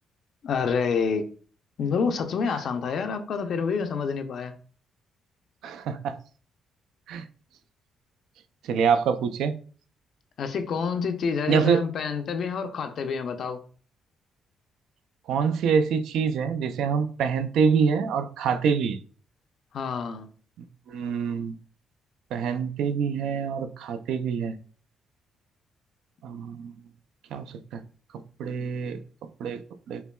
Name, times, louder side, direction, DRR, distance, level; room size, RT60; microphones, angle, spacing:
voice 1, 0.4-1.3 1.8-4.5 10.4-13.6 19.7-20.3, left 5 dB, 65° left, 7 dB, 0.5 m, -28 dB
voice 2, 5.6-6.2 7.1-7.2 8.6-9.5 11.5-11.8 15.3-19.0 20.9-21.5 22.3-24.5 26.2-26.7 27.3-27.5 27.7-27.8 28.4-29.0 29.4-29.6 29.9-30.0, right 6 dB, 80° right, 10 dB, 0.3 m, -25 dB
5.5 x 2.2 x 2.2 m, 0.42 s
cardioid pair, 90°, 0 cm